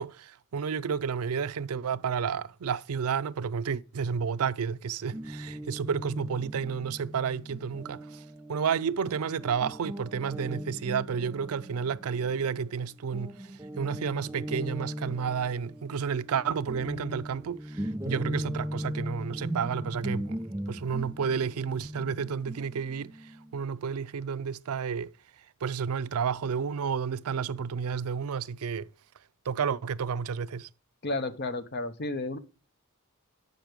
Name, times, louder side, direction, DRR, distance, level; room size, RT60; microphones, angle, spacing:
voice 1, 0.0-8.2 8.5-13.5 13.8-20.4 20.7-25.1 25.6-28.9 29.5-30.7, right 6 dB, 80° right, 0.4 m, -31 dB
Guitar, 5.1-12.8 13.1-23.6, equal, 10° right, 0.4 m, -38 dB
voice 2, 31.0-32.4, left 2 dB, 50° left, 0.9 m, -32 dB
8.0 x 6.2 x 5.0 m
head